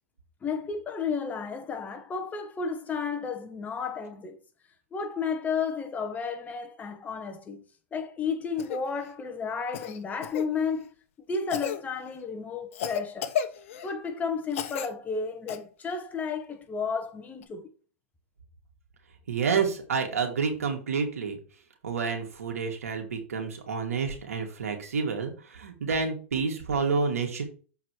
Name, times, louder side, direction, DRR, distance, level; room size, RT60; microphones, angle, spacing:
voice 1, 0.4-4.4 4.9-7.6 7.9-10.9 11.3-13.3 13.8-17.7, left 5 dB, 20° left, 1.5 m, -32 dB
Cough, 8.6-8.8 9.7-10.5 11.5-11.8 12.7-13.9 14.5-14.9 15.5-15.6 17.4-17.5, left 9 dB, 65° left, 1.1 m, -32 dB
voice 2, 19.3-21.4 21.8-27.4, right 5 dB, 85° right, 2.6 m, -29 dB
7.5 x 4.8 x 4.8 m
hypercardioid pair, 115°, 8 cm